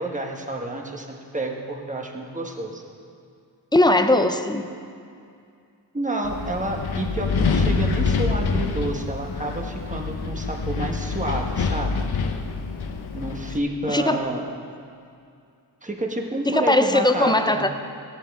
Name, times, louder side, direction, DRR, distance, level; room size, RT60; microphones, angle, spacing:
voice 1, 0.0-2.8 5.9-12.0 13.1-14.4 15.8-17.6, right 1 dB, 20° right, 1 dB, 1.2 m, -29 dB
voice 2, 3.7-4.7 13.9-14.3 16.5-17.7, left 1 dB, 10° left, 8 dB, 0.5 m, -19 dB
Wind, 6.2-13.6, left 4 dB, 65° left, 0.8 m, -26 dB
16.5 x 10.5 x 3.6 m, 2.4 s
wide cardioid pair, 125°, 41 cm